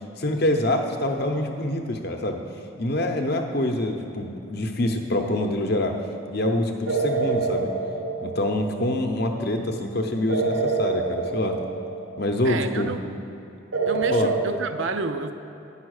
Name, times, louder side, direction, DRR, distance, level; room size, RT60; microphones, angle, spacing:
voice 1, 0.2-2.4 2.8-6.0 6.3-7.7 8.2-11.6 12.2-12.9 14.1-14.3, left 1 dB, 50° left, 4 dB, 0.7 m, -25 dB
sound 1, 6.9-8.9 10.3-12.4 13.7-14.5, right 4 dB, 85° right, 1.0 m, -26 dB
voice 2, 12.4-13.0 13.9-15.3, right 4 dB, 65° right, 9 dB, 0.5 m, -29 dB
9.3 x 5.7 x 6.4 m, 2.8 s
head